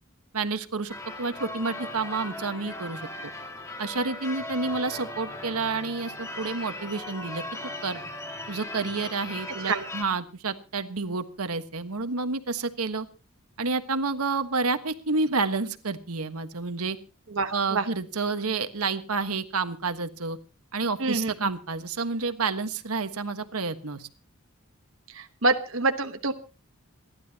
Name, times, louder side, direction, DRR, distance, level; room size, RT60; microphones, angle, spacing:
voice 1, 0.3-3.1 3.8-7.4 7.8-8.0 8.5-13.1 13.6-17.0 17.5-20.4 20.7-24.1, right 4 dB, 90° right, 9 dB, 1.4 m, -29 dB
Church bell / Car / Alarm, 0.9-10.0, left 2 dB, 15° left, 2.0 m, -38 dB
voice 2, 17.3-17.8 21.0-21.5 25.1-26.3, right 3 dB, 60° right, 6 dB, 1.1 m, -26 dB
27.5 x 12.0 x 2.9 m, 0.33 s
head